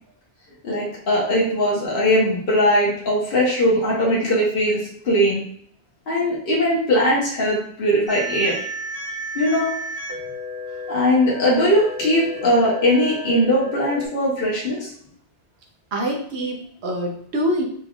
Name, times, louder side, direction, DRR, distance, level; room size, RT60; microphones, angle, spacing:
voice 1, 0.6-5.4 6.1-8.6 9.3-9.7 10.9-14.9, equal, 55° left, -5 dB, 1.2 m, -20 dB
sound 1, 8.1-14.1, equal, 25° right, 1.5 m, -32 dB
voice 2, 15.9-17.6, equal, 70° right, 1 dB, 1.1 m, -25 dB
4.3 x 3.3 x 2.4 m, 0.62 s
omnidirectional pair, 1.2 m